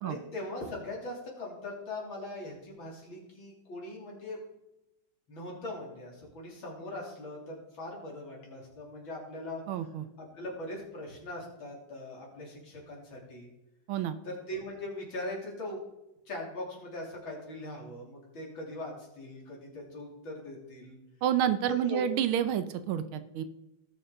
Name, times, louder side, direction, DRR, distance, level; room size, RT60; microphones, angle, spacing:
voice 1, 0.0-4.4 5.3-9.6 10.2-13.5 14.2-15.8 16.3-21.0 21.8-22.0, left 1 dB, 70° left, -2 dB, 3.8 m, -41 dB
voice 2, 9.7-10.0 13.9-14.2 21.2-23.4, right 10 dB, 80° right, 11 dB, 1.6 m, -29 dB
18.5 x 6.5 x 3.9 m, 0.93 s
omnidirectional pair, 2.2 m